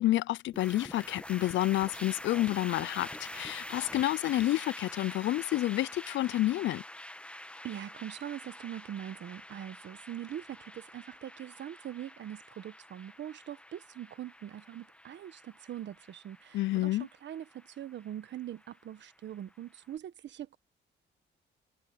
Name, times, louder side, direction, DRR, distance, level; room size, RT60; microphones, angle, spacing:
voice 1, 0.0-6.8 16.5-17.1, left 15 dB, 70° left, 0.4 m, -29 dB
sound 1, 0.5-19.8, left 1 dB, 5° left, 1.4 m, -47 dB
voice 2, 7.6-20.6, right 11 dB, 65° right, 1.3 m, -42 dB
cardioid pair, 90°, 20 cm